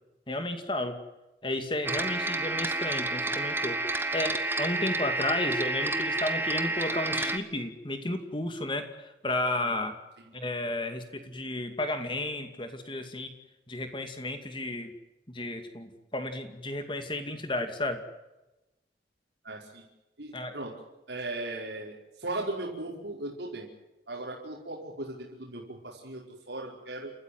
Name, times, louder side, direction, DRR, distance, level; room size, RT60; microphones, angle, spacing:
voice 1, 0.3-1.0 1.4-3.8 4.1-9.9 10.3-13.3 13.7-14.9 15.3-18.0 20.3-20.5, left 1 dB, 25° left, 7 dB, 2.4 m, -33 dB
sound 1, 1.8-7.4, right 2 dB, 10° right, 1.5 m, -30 dB
voice 2, 19.4-19.9 20.2-20.7 21.1-23.7 24.1-27.1, right 2 dB, 75° right, -1 dB, 5.1 m, -37 dB
29.0 x 14.0 x 9.6 m, 0.99 s
head